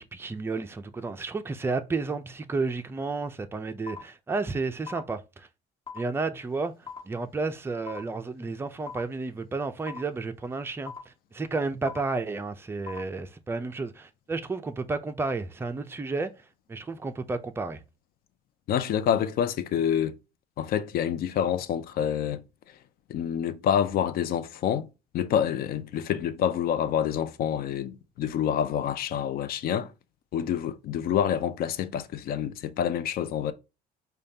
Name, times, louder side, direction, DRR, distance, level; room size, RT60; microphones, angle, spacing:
voice 1, 0.0-5.5 5.9-16.3 16.7-17.8, right 3 dB, 15° right, 0.4 m, -32 dB
sound 1, 3.9-4.0 4.9-5.0 5.9-6.0 6.9-7.0 7.9-8.0 8.9-9.0 9.9-10.0 10.9-11.0 11.9-12.0 12.9-13.0, left 7 dB, 35° left, 1.5 m, -39 dB
voice 2, 18.7-20.2 20.6-22.4 23.1-24.9 25.1-29.9 30.3-33.5, left 9 dB, 60° left, 0.5 m, -27 dB
5.0 x 2.3 x 2.7 m
cardioid pair, 110°, 17 cm